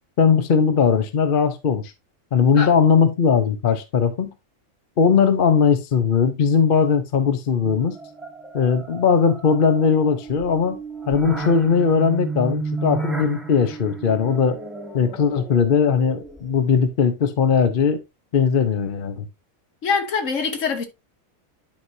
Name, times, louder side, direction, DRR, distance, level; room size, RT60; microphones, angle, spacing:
voice 1, 0.2-1.9 2.3-4.3 5.0-8.0 8.5-10.8 11.1-14.6 14.9-18.0 18.3-19.3, left 6 dB, 45° left, 0.9 m, -19 dB
sound 1, 7.6-16.7, right 3 dB, ahead, 1.3 m, -33 dB
voice 2, 19.8-20.9, left 5 dB, 65° left, 1.5 m, -23 dB
10.5 x 4.7 x 2.7 m
omnidirectional pair, 1.4 m